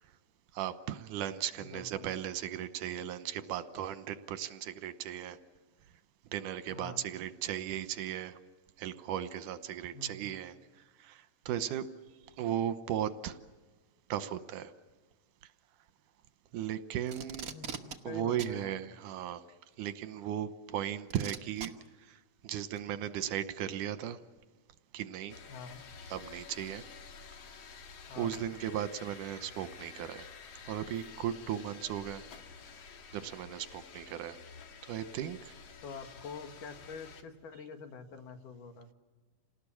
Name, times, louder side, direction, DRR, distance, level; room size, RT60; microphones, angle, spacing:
voice 1, 0.6-5.4 6.3-8.4 8.8-10.5 11.0-11.8 12.4-13.4 14.1-14.7 16.5-17.5 18.1-19.4 19.8-21.7 22.1-22.2 22.4-24.2 24.9-25.3 26.1-26.8 28.2-30.3 30.7-32.2 33.1-34.4 34.9-35.4, right 10 dB, 85° right, 12 dB, 2.5 m, -36 dB
voice 2, 1.6-2.1 6.7-7.1 9.9-10.3 17.5-17.7 18.0-18.8 25.5-25.8 28.1-28.4 35.8-38.9, left 4 dB, 90° left, 6 dB, 3.3 m, -46 dB
Packing tape duct tape, 17.1-18.0 18.4-18.6 19.9-20.0 21.1-21.7 22.8-22.9, right 6 dB, 55° right, 1.0 m, -41 dB
sound 1, 25.3-37.2, left 5 dB, 55° left, 2.6 m, -51 dB
28.0 x 19.0 x 8.6 m, 1.4 s
omnidirectional pair, 3.6 m